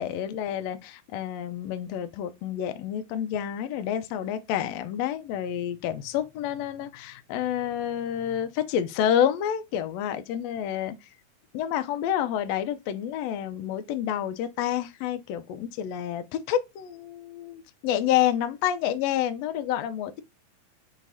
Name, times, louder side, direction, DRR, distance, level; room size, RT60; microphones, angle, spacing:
voice 1, 0.0-10.9 11.5-20.2, left 10 dB, 85° left, 1.5 m, -29 dB
5.8 x 3.5 x 2.6 m
omnidirectional pair, 3.6 m